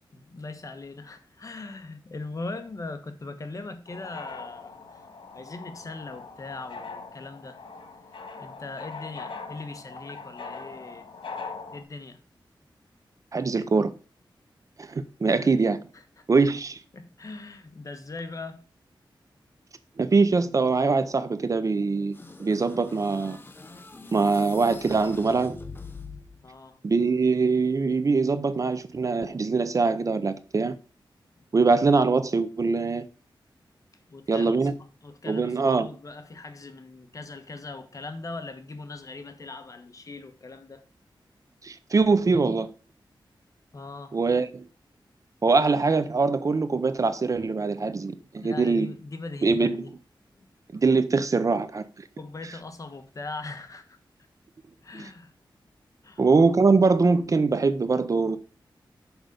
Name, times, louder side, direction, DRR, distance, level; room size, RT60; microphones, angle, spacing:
voice 1, 0.1-4.7 5.3-7.6 8.4-11.1 11.7-12.2 15.3-15.6 15.9-16.2 16.9-18.6 26.4-26.8 34.1-34.7 35.0-40.8 43.7-44.2 48.4-49.9 50.4-50.5 52.2-54.0 54.8-55.3 56.0-56.2, left 3 dB, 40° left, 1.2 m, -40 dB
sound 1, 3.9-11.8, left 4 dB, 90° left, 1.5 m, -41 dB
voice 2, 13.3-13.9 14.8-15.8 16.3-16.8 20.0-23.4 24.1-25.5 26.8-30.8 31.5-33.0 34.3-34.7 35.3-35.9 41.6-42.7 44.1-44.7 45.4-48.9 49.4-49.8 50.7-52.1 54.9-55.1 56.2-58.4, right 4 dB, 40° right, 0.6 m, -23 dB
sound 2, 22.1-26.5, left 3 dB, 25° left, 0.8 m, -44 dB
6.2 x 5.1 x 6.6 m
wide cardioid pair, 145°, 8 cm